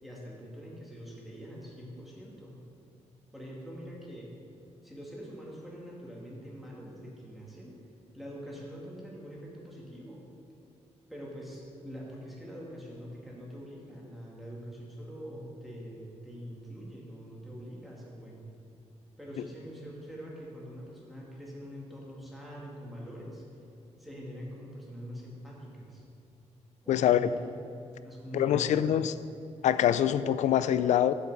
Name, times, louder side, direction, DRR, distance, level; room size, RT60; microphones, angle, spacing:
voice 1, 0.0-2.6 3.3-4.3 4.8-7.8 8.1-10.2 11.1-18.5 19.2-23.4 24.0-26.0 26.8-27.5 28.0-28.8, equal, ahead, -4 dB, 2.1 m, -44 dB
voice 2, 26.9-27.2 28.3-29.1 29.6-31.1, left 10 dB, 80° left, 14 dB, 0.4 m, -24 dB
8.0 x 5.9 x 7.7 m, 2.7 s
cardioid pair, 125°, 12 cm